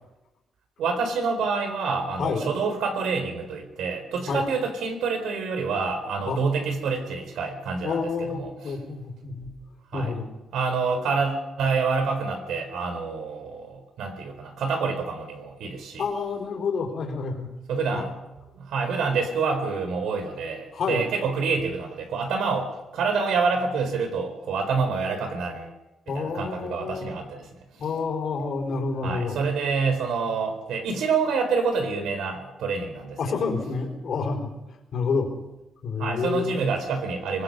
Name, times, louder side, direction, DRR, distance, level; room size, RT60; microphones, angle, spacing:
voice 1, 0.8-8.7 9.9-10.1 10.5-16.0 17.7-18.1 18.6-25.7 26.1-27.5 29.0-33.5 36.0-37.4, right 5 dB, 85° right, 7 dB, 4.1 m, -27 dB
voice 2, 7.8-9.5 9.9-10.3 16.0-17.5 17.9-18.1 20.7-21.1 26.1-27.2 27.8-29.4 33.2-34.5 34.9-35.3 35.8-36.6, left 4 dB, 55° left, 2 dB, 4.6 m, -28 dB
24.0 x 20.0 x 5.5 m, 1.0 s
cardioid pair, 130°, 0 cm